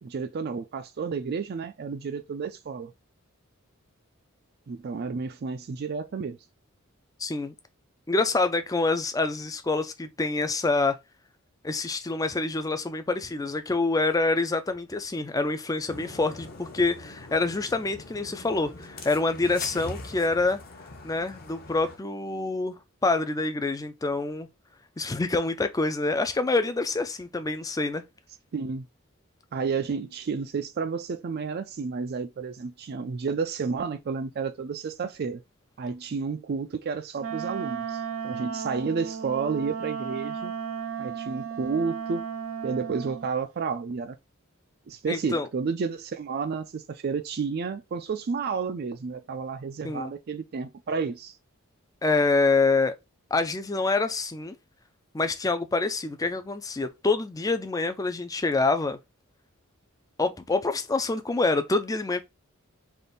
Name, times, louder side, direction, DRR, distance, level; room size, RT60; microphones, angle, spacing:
voice 1, 0.0-2.9 4.7-6.4 28.5-28.9 29.5-35.4 35.8-40.5 41.0-42.2 42.6-44.2 44.9-51.4, right 5 dB, 50° right, 0.4 m, -31 dB
voice 2, 7.2-7.5 8.1-11.0 11.6-20.6 21.0-24.5 25.0-28.0 45.1-45.5 49.8-50.1 52.0-52.9 53.3-54.5 55.1-59.0 60.2-62.2, left 3 dB, 15° left, 0.4 m, -26 dB
sound 1, 15.9-22.0, left 2 dB, 45° left, 0.8 m, -43 dB
Wind instrument woodwind instrument, 37.2-43.3, right 6 dB, 80° right, 0.7 m, -34 dB
3.5 x 2.5 x 3.9 m
head